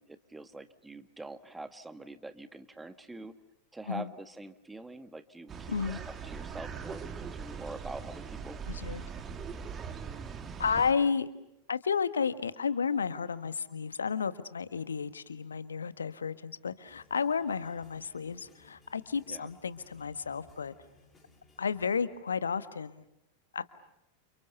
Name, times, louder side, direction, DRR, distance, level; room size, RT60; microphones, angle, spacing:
voice 1, 0.0-3.3 3.7-8.6 19.3-19.5, right 2 dB, 10° right, 11 dB, 1.6 m, -45 dB
sound 1, 5.5-10.9, right 6 dB, 25° right, 2.3 m, -41 dB
voice 2, 5.7-6.0 8.7-9.0 10.6-11.3 11.7-20.7 21.6-23.0 23.5-23.6, left 6 dB, 70° left, 13 dB, 1.5 m, -32 dB
sound 2, 16.8-22.0, left 2 dB, 15° left, 6.4 m, -62 dB
29.5 x 29.5 x 6.9 m, 0.83 s
figure-of-eight pair, 90°, 0 cm